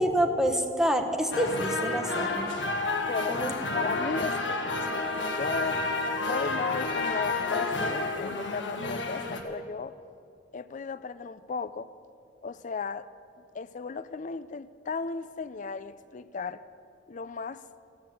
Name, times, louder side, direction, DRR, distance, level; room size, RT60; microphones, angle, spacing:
voice 1, 0.0-2.5 3.3-3.5, equal, 5° right, 4 dB, 0.9 m, -27 dB
sound 1, 1.3-9.4, left 3 dB, 90° left, 1.5 m, -30 dB
voice 2, 3.1-3.4 3.7-5.8 6.3-9.9 10.5-11.9 12.4-13.1 13.5-16.6 17.1-17.6, left 5 dB, 45° left, 14 dB, 0.4 m, -35 dB
14.5 x 10.0 x 7.8 m, 2.6 s
head